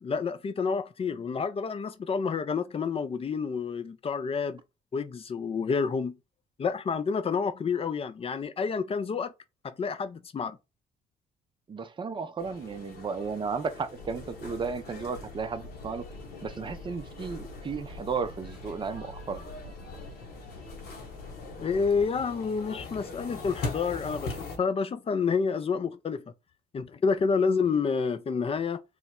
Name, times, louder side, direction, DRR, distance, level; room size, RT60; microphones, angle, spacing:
voice 1, 0.0-4.6 4.9-6.2 6.6-9.3 9.6-10.6 21.6-26.3 26.7-28.8, left 5 dB, 30° left, 0.4 m, -29 dB
voice 2, 11.7-16.1 16.4-19.4, right 5 dB, 25° right, 0.5 m, -34 dB
sound 1, 12.4-24.6, left 3 dB, 60° left, 1.0 m, -42 dB
sound 2, 13.9-22.0, left 2 dB, 80° left, 0.8 m, -45 dB
3.0 x 2.0 x 3.6 m
hypercardioid pair, 55°, 19 cm